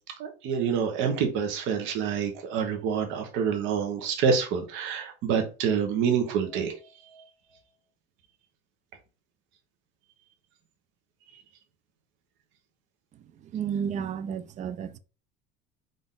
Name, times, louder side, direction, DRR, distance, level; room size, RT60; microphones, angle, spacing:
voice 1, 0.2-6.7, right 6 dB, 65° right, 1.0 m, -27 dB
voice 2, 13.5-15.0, right 7 dB, 35° right, 0.4 m, -31 dB
3.9 x 2.6 x 3.7 m
cardioid pair, 120°, 21 cm